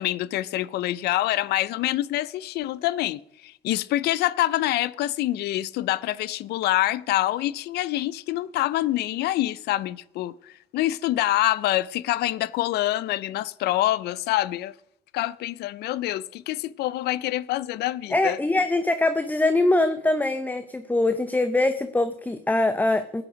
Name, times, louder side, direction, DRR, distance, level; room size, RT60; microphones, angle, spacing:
voice 1, 0.0-14.7 15.1-18.4, left 15 dB, 75° left, 0.5 m, -26 dB
voice 2, 18.1-23.2, left 2 dB, 10° left, 0.6 m, -23 dB
15.0 x 8.8 x 5.0 m
cardioid pair, 110°, 17 cm